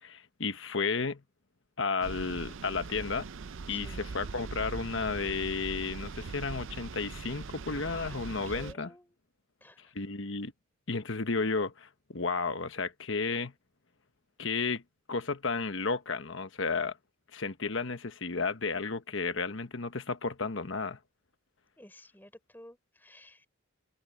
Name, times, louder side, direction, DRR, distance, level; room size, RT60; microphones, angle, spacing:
voice 1, 0.0-1.2 1.8-3.3 3.7-8.9 9.8-10.5 10.9-13.5 14.4-14.8 15.1-17.0 17.3-21.0, left 4 dB, 70° left, 1.2 m, -33 dB
sound 1, 2.0-8.7, right 4 dB, 70° right, 0.6 m, -41 dB
voice 2, 3.7-4.3 7.9-8.2 8.5-9.1 9.6-9.9 21.8-23.5, left 1 dB, 10° left, 4.3 m, -53 dB
head